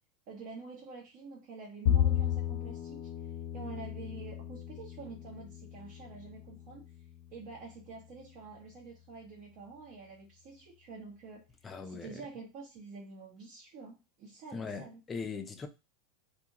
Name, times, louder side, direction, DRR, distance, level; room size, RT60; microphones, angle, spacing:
voice 1, 0.3-3.0 3.5-6.9 7.3-11.5 11.8-15.0, right 4 dB, 50° right, 0.9 m, -47 dB
Bowed string instrument, 1.9-8.2, left 10 dB, 80° left, 0.6 m, -34 dB
voice 2, 11.6-12.3 14.5-15.7, left 5 dB, 20° left, 0.5 m, -40 dB
2.7 x 2.5 x 2.8 m
supercardioid pair, 135°, 0 cm